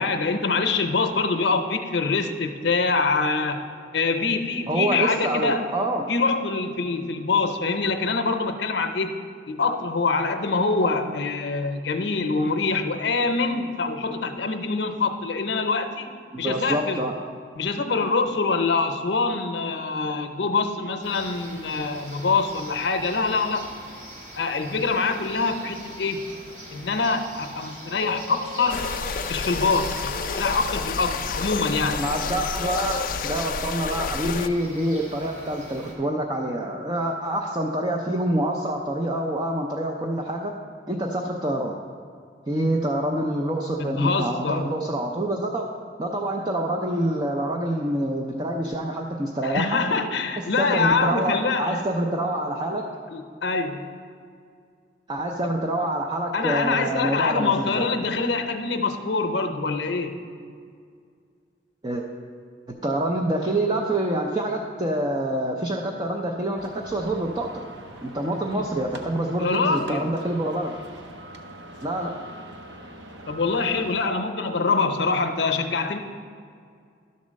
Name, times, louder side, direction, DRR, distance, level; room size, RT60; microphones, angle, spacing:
voice 1, 0.0-3.6 3.9-5.7 6.1-9.1 9.5-16.1 16.4-17.1 17.6-23.7 24.4-26.2 26.7-28.9 29.3-32.0 43.8-44.7 49.4-51.8 53.1-53.9 55.4-55.5 56.3-60.2 69.4-70.1 73.3-76.0, left 4 dB, 75° left, 7 dB, 0.7 m, -25 dB
voice 2, 4.7-6.1 16.3-17.1 32.0-32.9 33.2-40.5 40.9-41.8 42.5-45.7 46.0-49.8 50.6-52.8 55.1-57.9 61.8-62.0 62.7-67.6 68.0-70.8 71.8-72.1, right 1 dB, 25° right, 1 dB, 0.5 m, -26 dB
sound 1, 21.0-35.9, equal, 45° right, 1.7 m, -42 dB
sound 2, 28.7-34.5, left 5 dB, 50° left, 0.3 m, -30 dB
sound 3, 66.6-74.0, right 1 dB, 85° right, 0.7 m, -43 dB
11.5 x 4.2 x 6.3 m, 2.2 s
head